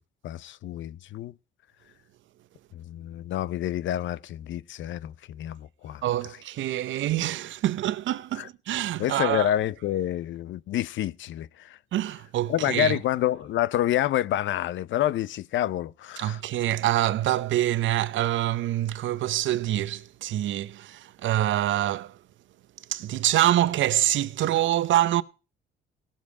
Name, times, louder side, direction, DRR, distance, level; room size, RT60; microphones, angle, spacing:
voice 1, 0.2-1.3 2.7-6.0 6.3-6.4 8.4-8.5 9.0-11.8 12.5-16.4, left 12 dB, 75° left, 0.6 m, -28 dB
voice 2, 6.0-9.5 11.9-12.9 16.2-22.1 22.9-25.2, right 13 dB, 75° right, 0.8 m, -25 dB
17.5 x 7.4 x 4.7 m
cardioid pair, 90°, 20 cm